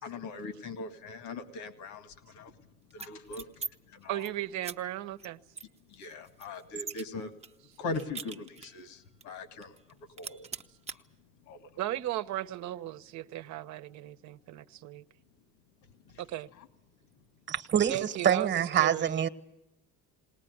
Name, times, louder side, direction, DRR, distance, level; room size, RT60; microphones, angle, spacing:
voice 1, 0.0-2.5 2.9-4.3 5.9-7.3 7.8-9.8 10.2-10.5 10.9-11.0 11.5-11.7 16.1-16.2, left 3 dB, 70° left, 2.0 m, -41 dB
sound 1, 2.9-3.7 4.0-4.3 4.6-4.8 5.2-5.3 5.6-7.0 7.4-8.8 9.2-9.3 9.6-9.9 10.2-11.0, right 5 dB, 20° right, 0.9 m, -41 dB
voice 2, 4.1-5.4 11.8-15.0 16.2-16.5 17.9-19.3, right 14 dB, 65° right, 1.0 m, -36 dB
voice 3, 17.5-19.3, right 9 dB, 35° right, 1.3 m, -26 dB
19.5 x 19.5 x 9.5 m
cardioid pair, 110°, 31 cm